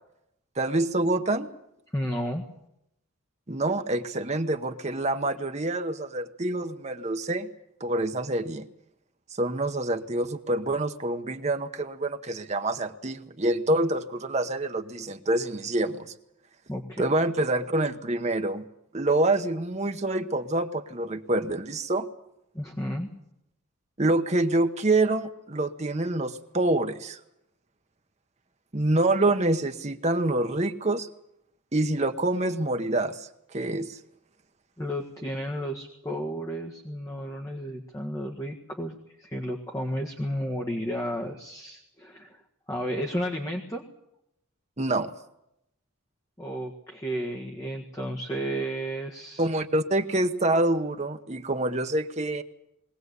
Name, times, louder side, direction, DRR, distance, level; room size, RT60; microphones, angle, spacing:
voice 1, 0.6-1.5 3.5-7.5 7.8-8.7 9.4-16.1 17.0-18.6 18.9-22.1 24.0-27.2 28.7-31.1 31.7-33.3 33.5-34.0 44.8-45.1 49.4-52.4, right 2 dB, 30° right, 7 dB, 1.0 m, -26 dB
voice 2, 1.9-2.4 16.7-17.0 22.5-23.1 34.8-42.4 42.7-43.8 46.4-49.5, equal, 15° left, 0 dB, 1.7 m, -32 dB
22.0 x 18.5 x 8.2 m, 0.82 s
head